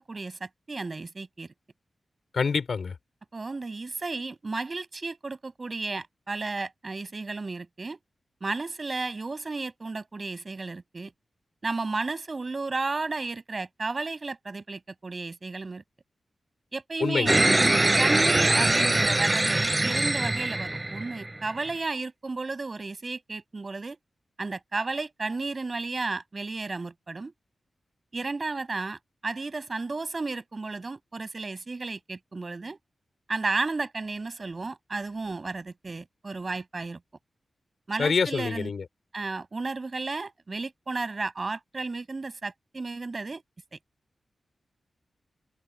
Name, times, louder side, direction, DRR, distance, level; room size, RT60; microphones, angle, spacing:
voice 1, 0.0-1.5 3.3-8.0 8.4-11.1 11.6-15.8 16.7-24.0 24.4-27.3 28.1-32.8 33.3-37.0 37.9-38.7 39.1-43.4 43.7-43.8, right 3 dB, 40° right, 5.9 m, -33 dB
voice 2, 2.3-2.9 17.0-17.4 38.0-38.8, left 5 dB, 70° left, 2.8 m, -26 dB
sound 1, 17.3-21.4, right 2 dB, 20° right, 4.5 m, -23 dB
cardioid pair, 70°, 0 cm